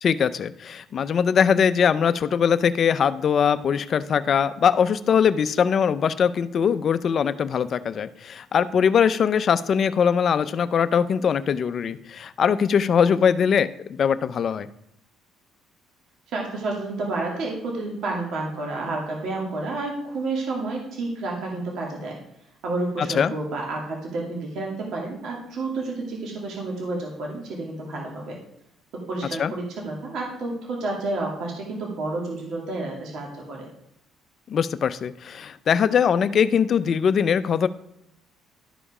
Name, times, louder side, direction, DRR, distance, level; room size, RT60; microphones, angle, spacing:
voice 1, 0.0-14.7 23.1-23.3 29.4-29.5 34.5-37.7, left 7 dB, 45° left, 14 dB, 0.5 m, -21 dB
voice 2, 16.3-22.2 22.6-28.4 28.9-33.7, right 2 dB, 65° right, -1 dB, 2.3 m, -30 dB
12.0 x 5.1 x 4.9 m, 0.80 s
cardioid pair, 115°, 0 cm